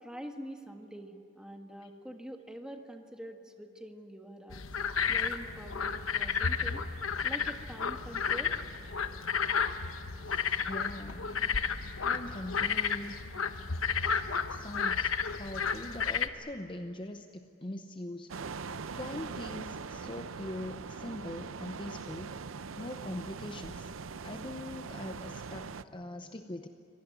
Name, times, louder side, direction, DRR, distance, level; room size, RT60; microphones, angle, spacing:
voice 1, 0.0-4.6 5.1-6.8 7.2-8.6, equal, 5° right, 4 dB, 1.5 m, -45 dB
sound 1, 4.5-16.3, left 6 dB, 80° left, 1.1 m, -32 dB
voice 2, 10.2-11.3 11.8-13.2 14.5-15.1 15.4-18.3 18.9-22.4 22.8-23.9 24.2-26.7, left 1 dB, 25° left, 7 dB, 0.7 m, -42 dB
sound 2, 18.3-25.8, right 5 dB, 75° right, 0.6 m, -42 dB
25.0 x 18.5 x 9.5 m, 2.7 s
head